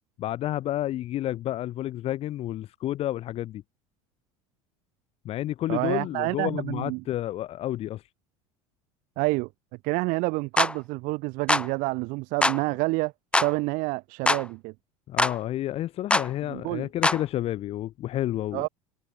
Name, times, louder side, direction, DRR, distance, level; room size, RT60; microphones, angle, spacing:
voice 1, 0.2-3.6 5.2-8.1 15.1-18.7, left 13 dB, 35° left, 0.5 m, -30 dB
voice 2, 5.7-7.0 9.2-9.5 9.8-14.7 16.5-16.9 18.5-18.7, right 25 dB, 50° right, 0.6 m, -28 dB
sound 1, 10.6-10.7 11.5-11.7 12.4-12.6 13.3-13.5 14.3-14.4 15.2-15.4 16.1-16.3 17.0-17.2, left 2 dB, 5° left, 0.8 m, -22 dB
figure-of-eight pair, 70°, 17 cm